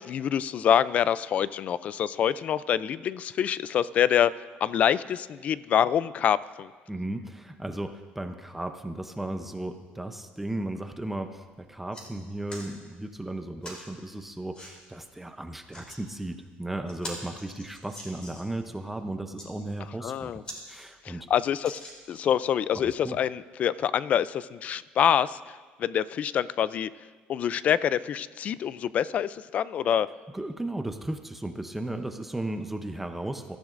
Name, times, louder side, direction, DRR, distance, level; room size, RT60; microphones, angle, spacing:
voice 1, 0.0-4.3 4.6-6.7 20.0-20.4 21.0-21.8 22.1-26.9 27.3-30.1, left 9 dB, 40° left, 17 dB, 0.3 m, -26 dB
voice 2, 6.9-21.3 23.0-23.2 30.3-33.6, right 1 dB, 5° right, 6 dB, 0.6 m, -35 dB
sound 1, 11.2-11.4 11.7-12.1 12.5-12.7 13.6-13.9 14.5-14.7 15.5-16.0 16.5-16.6 16.9-18.5 19.2-19.5 20.0-20.1 20.4-20.6 21.0-21.1 21.6-22.3 23.0-23.1, left 1 dB, 25° left, 3.1 m, -43 dB
23.5 x 14.0 x 2.5 m, 1.4 s
cardioid pair, 155°, 4 cm